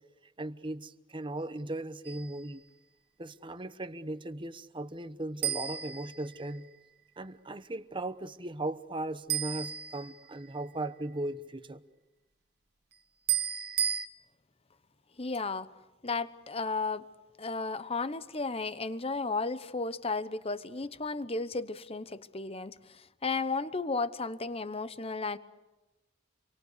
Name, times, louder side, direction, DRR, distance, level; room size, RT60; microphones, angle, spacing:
voice 1, 0.4-2.6 3.2-6.7 7.2-11.8, right 2 dB, 25° right, 1.0 m, -37 dB
sound 1, 2.0-2.5 5.4-6.8 9.3-10.6 13.3-14.1, right 10 dB, 60° right, 1.7 m, -33 dB
voice 2, 15.2-15.7 16.0-17.1 17.4-25.4, left 3 dB, 30° left, 1.0 m, -34 dB
28.5 x 23.5 x 8.2 m
head